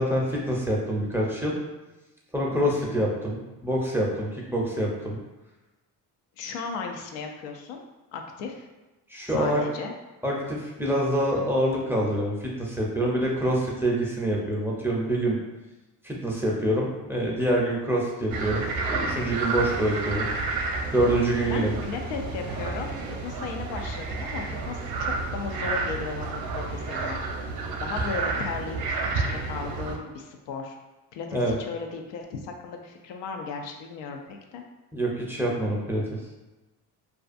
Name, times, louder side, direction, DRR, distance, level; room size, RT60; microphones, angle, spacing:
voice 1, 0.0-1.6 2.3-5.2 9.1-9.6 10.2-15.4 16.0-20.3 20.9-21.7 31.3-31.6 34.9-36.0, right 1 dB, 5° right, -4 dB, 0.5 m, -26 dB
voice 2, 2.7-3.1 6.4-7.8 8.1-8.7 9.3-9.9 21.4-27.2 27.8-30.8 31.1-34.6, left 5 dB, 80° left, 3 dB, 0.5 m, -36 dB
sound 1, 18.3-30.0, right 3 dB, 55° right, 0.6 m, -30 dB
2.5 x 2.3 x 2.5 m, 1.1 s
supercardioid pair, 80°, 43 cm